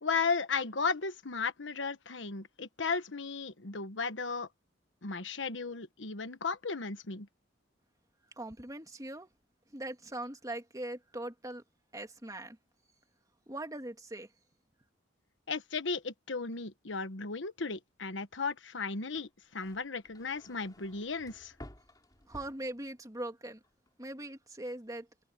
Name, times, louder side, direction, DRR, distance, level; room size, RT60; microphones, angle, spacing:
voice 1, 0.0-4.5 5.0-7.3 15.5-21.5, left 4 dB, 85° left, 1.3 m, -35 dB
voice 2, 8.4-9.3 9.7-11.6 11.9-12.6 13.5-14.3 22.3-23.6 24.0-25.1, right 1 dB, 20° right, 2.8 m, -41 dB
sound 1, 19.0-23.3 23.6-24.2, left 1 dB, 20° left, 3.4 m, -54 dB
head